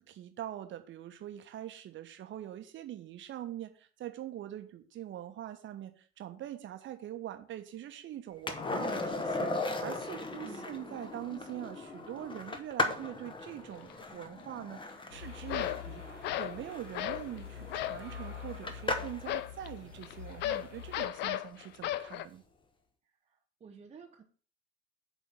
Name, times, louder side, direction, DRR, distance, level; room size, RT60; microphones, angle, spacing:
voice 1, 0.1-22.4, right 12 dB, 35° right, 8 dB, 1.2 m, -43 dB
Skateboard, 8.5-19.3 21.9-22.0, left 2 dB, 15° left, 1.1 m, -38 dB
voice 2, 10.4-10.9 23.2-24.2, right 6 dB, 20° right, 2 dB, 0.9 m, -52 dB
sound 1, 13.7-13.9 15.5-15.9 16.2-16.6 16.9-17.3 17.7-18.1 19.3-22.3, left 13 dB, 30° left, 0.4 m, -35 dB
sound 2, 15.1-21.1, left 7 dB, 90° left, 1.0 m, -46 dB
7.8 x 4.2 x 7.0 m, 0.42 s
figure-of-eight pair, 75°, 35 cm